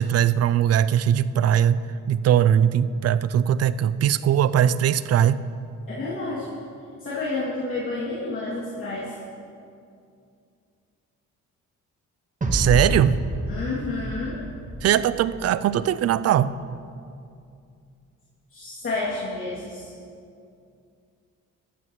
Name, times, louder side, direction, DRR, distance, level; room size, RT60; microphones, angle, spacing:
voice 1, 0.0-5.4 12.5-13.2 14.8-16.6, right 9 dB, 55° right, 16 dB, 0.5 m, -20 dB
voice 2, 5.9-6.5 7.0-9.1 13.5-14.4 18.5-19.9, left 3 dB, 45° left, -8 dB, 2.7 m, -30 dB
sound 1, 12.4-15.7, right 1 dB, 25° right, 1.4 m, -28 dB
13.5 x 13.0 x 3.2 m, 2.4 s
cardioid pair, 90°, 30 cm